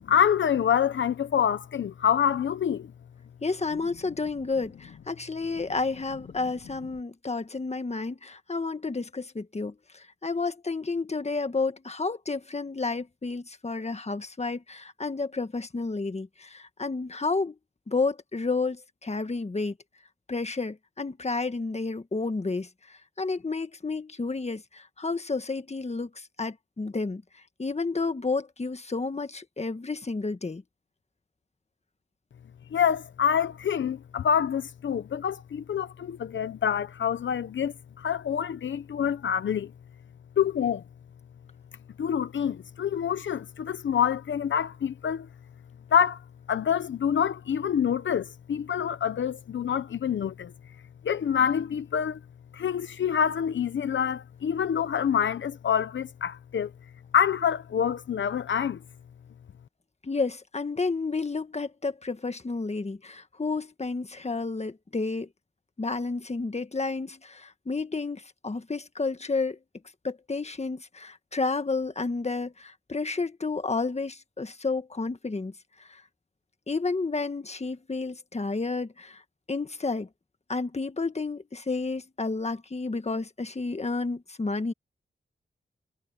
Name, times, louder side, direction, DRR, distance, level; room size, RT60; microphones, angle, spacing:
voice 1, 0.1-2.9 32.7-39.7 40.4-40.8 42.0-45.3 45.9-46.2 46.5-50.5 51.0-52.2 52.5-56.7 57.1-58.8, left 8 dB, 80° left, 0.7 m, -26 dB
voice 2, 3.4-17.5 17.9-19.7 20.3-22.7 23.2-27.2 27.6-30.6 60.0-65.3 65.8-69.6 70.0-75.5 76.7-79.2 79.5-80.1 80.5-84.7, left 3 dB, 35° left, 1.6 m, -31 dB
cardioid pair, 65°, 19 cm